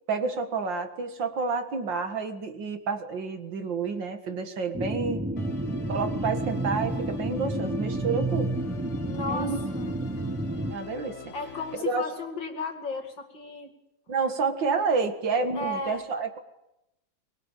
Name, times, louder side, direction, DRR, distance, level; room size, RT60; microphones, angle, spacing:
voice 1, 0.1-5.2 5.9-8.6 9.3-9.6 10.7-11.3 11.8-12.0 14.1-16.4, right 4 dB, 70° right, 7 dB, 2.5 m, -29 dB
sound 1, 4.7-10.7, right 1 dB, 20° right, 0.3 m, -30 dB
Musical instrument, 5.4-11.8, left 6 dB, 40° left, 1.5 m, -44 dB
voice 2, 9.0-9.9 11.3-13.7 14.7-14.8 15.5-16.1, left 3 dB, 70° left, 4 dB, 3.0 m, -34 dB
23.0 x 21.5 x 7.4 m, 0.89 s
omnidirectional pair, 2.1 m